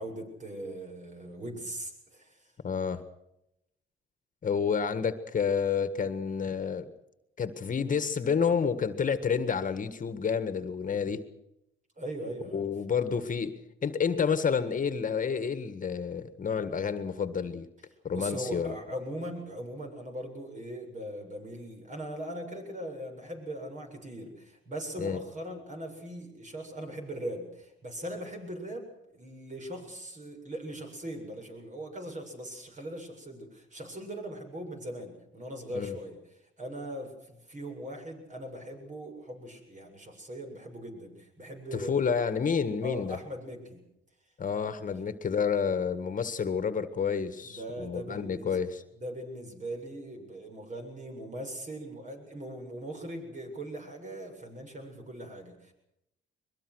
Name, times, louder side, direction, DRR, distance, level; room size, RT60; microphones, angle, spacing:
voice 1, 0.0-2.5 12.0-12.7 18.1-36.2 36.6-42.1 42.8-43.8 47.4-48.6 49.0-55.7, right 1 dB, 40° right, 4 dB, 7.8 m, -40 dB
voice 2, 2.6-3.0 4.4-6.9 7.4-11.2 12.5-13.6 13.8-17.7 18.0-18.8 25.0-25.2 35.7-36.0 41.7-43.2 44.4-48.8, left 6 dB, 40° left, 10 dB, 1.7 m, -29 dB
23.0 x 22.0 x 6.4 m, 0.83 s
cardioid pair, 90°, 20 cm